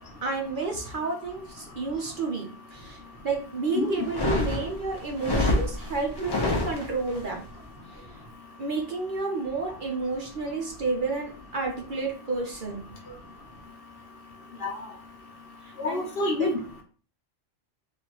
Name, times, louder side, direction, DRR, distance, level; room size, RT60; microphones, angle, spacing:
voice 1, 0.2-7.4 8.6-12.8 15.6-16.1 16.4-16.5, right 3 dB, 50° right, 1 dB, 0.8 m, -31 dB
voice 2, 3.7-4.1 14.6-14.7 15.8-16.6, left 2 dB, 55° left, 1 dB, 1.0 m, -27 dB
sound 1, 4.0-7.2, left 2 dB, 25° left, 0.7 m, -27 dB
3.4 x 2.7 x 4.3 m, 0.41 s
omnidirectional pair, 1.2 m